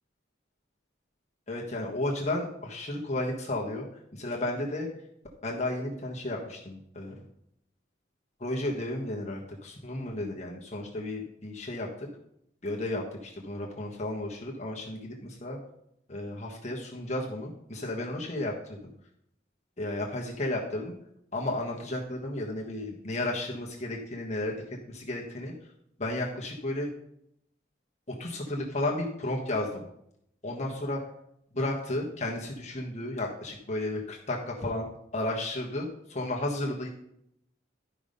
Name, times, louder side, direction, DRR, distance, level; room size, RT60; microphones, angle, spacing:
voice 1, 1.5-3.9 4.1-4.9 5.4-7.1 8.4-12.1 12.6-15.6 16.1-18.8 19.8-20.9 21.3-25.5 26.0-26.9 28.1-29.8 30.4-31.0 31.5-36.9, left 1 dB, 35° left, -1 dB, 1.4 m, -33 dB
12.0 x 5.4 x 5.2 m, 0.75 s
head